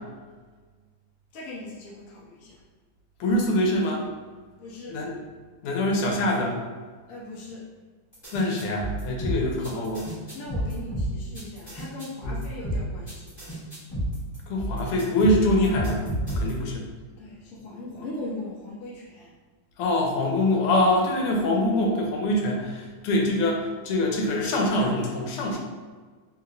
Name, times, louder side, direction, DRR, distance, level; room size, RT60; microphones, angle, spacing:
voice 1, 1.3-2.6 4.6-5.0 7.1-7.7 10.3-13.3 17.1-19.3, left 2 dB, 55° left, -5 dB, 1.0 m, -39 dB
voice 2, 3.2-4.0 4.9-5.1 5.6-6.6 8.3-10.1 12.2-12.3 14.5-16.0 16.4-16.9 19.8-25.6, left 1 dB, 90° left, 0 dB, 1.6 m, -24 dB
sound 1, 8.1-16.7, right 1 dB, 15° left, 1.1 m, -30 dB
3.5 x 2.9 x 2.5 m, 1.4 s
omnidirectional pair, 2.4 m